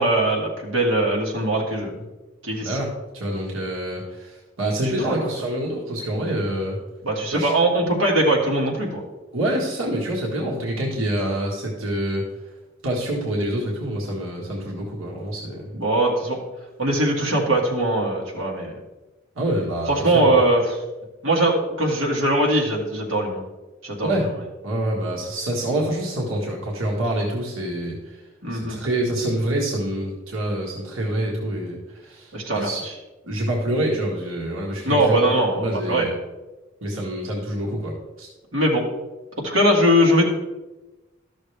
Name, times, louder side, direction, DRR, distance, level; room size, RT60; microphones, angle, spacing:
voice 1, 0.0-2.1 2.4-2.8 5.1-5.2 7.0-9.0 15.7-16.4 16.8-18.7 19.9-20.8 21.2-23.4 23.8-24.3 28.4-28.8 32.3-32.7 34.8-36.1 38.5-38.8 39.4-40.2, right 1 dB, 70° right, -2 dB, 1.9 m, -21 dB
voice 2, 2.6-6.8 7.3-7.5 9.3-12.3 12.8-15.7 19.4-20.4 24.0-24.3 24.6-28.2 28.5-32.8 33.2-36.1 36.8-38.3, right 1 dB, 90° right, -2 dB, 1.6 m, -26 dB
13.0 x 6.4 x 3.4 m, 1.1 s
head